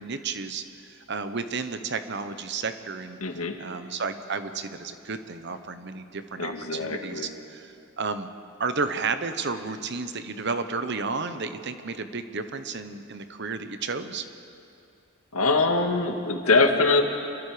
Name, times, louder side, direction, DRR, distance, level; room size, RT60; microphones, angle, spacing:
voice 1, 0.0-3.2 3.6-8.3 8.6-14.3, right 4 dB, 50° right, 9 dB, 1.1 m, -32 dB
voice 2, 3.2-3.5 6.4-7.3 15.3-17.0, left 3 dB, 85° left, 4 dB, 2.0 m, -23 dB
27.0 x 22.0 x 5.1 m, 2.5 s
head